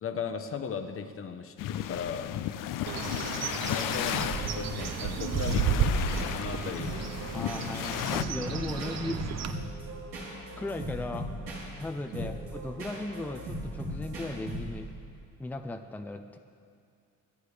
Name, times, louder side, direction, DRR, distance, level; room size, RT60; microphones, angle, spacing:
voice 1, 0.0-2.4 3.7-7.0 12.1-12.3, left 6 dB, 40° left, 7 dB, 1.0 m, -37 dB
sound 1, 1.6-8.2, left 12 dB, 70° left, 0.5 m, -34 dB
Bird, 2.9-9.5, right 7 dB, 50° right, 0.8 m, -33 dB
sound 2, 4.1-15.0, right 1 dB, 75° right, 3.7 m, -38 dB
voice 2, 7.3-9.2 10.6-11.3 11.8-14.9 15.4-16.4, left 2 dB, 5° left, 6 dB, 0.6 m, -37 dB
24.0 x 8.8 x 3.4 m, 2.3 s
cardioid pair, 115°, 33 cm